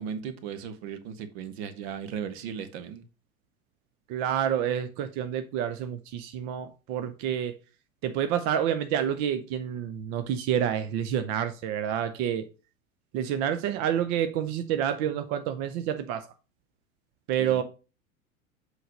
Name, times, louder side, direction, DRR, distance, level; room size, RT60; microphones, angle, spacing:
voice 1, 0.0-3.0 17.4-17.6, right 7 dB, 45° right, 1.0 m, -37 dB
voice 2, 4.1-7.6 8.0-12.4 13.1-16.2 17.3-17.6, right 9 dB, 25° right, 0.4 m, -28 dB
7.7 x 3.2 x 5.0 m
figure-of-eight pair, 85°, 43 cm